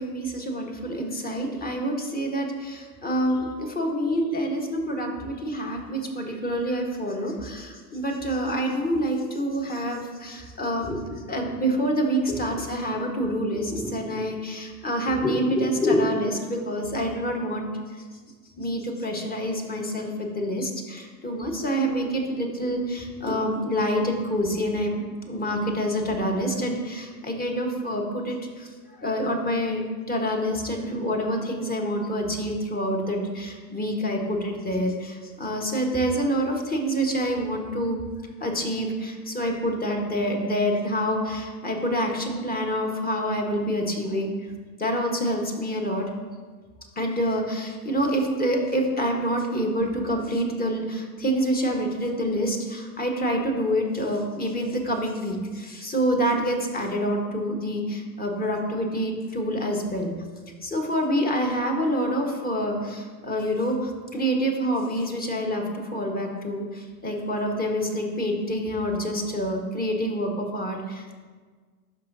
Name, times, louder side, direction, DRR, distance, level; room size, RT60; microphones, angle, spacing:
voice 1, 0.0-18.0 18.6-29.8 30.1-38.0 38.4-44.3 44.8-46.1 46.9-60.1 60.6-71.2, equal, 20° left, 1 dB, 1.4 m, -27 dB
12.0 x 5.2 x 2.7 m, 1.5 s
hypercardioid pair, 85°, 47 cm